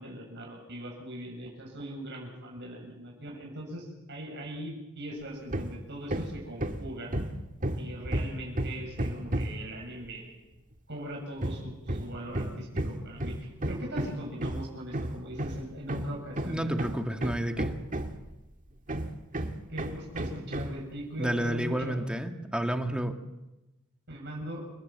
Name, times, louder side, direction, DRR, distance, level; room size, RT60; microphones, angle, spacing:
voice 1, 0.0-7.1 7.8-10.3 10.9-17.0 19.7-22.0 24.1-24.7, right 1 dB, 60° right, 0 dB, 7.2 m, -40 dB
Hammer, 5.5-5.8 6.1-9.7 11.4-18.3 18.9-20.8, right 1 dB, 40° right, 1.8 m, -33 dB
voice 2, 16.4-17.7 21.2-23.2, right 1 dB, 5° right, 5 dB, 1.9 m, -30 dB
29.5 x 19.0 x 7.7 m, 0.99 s
head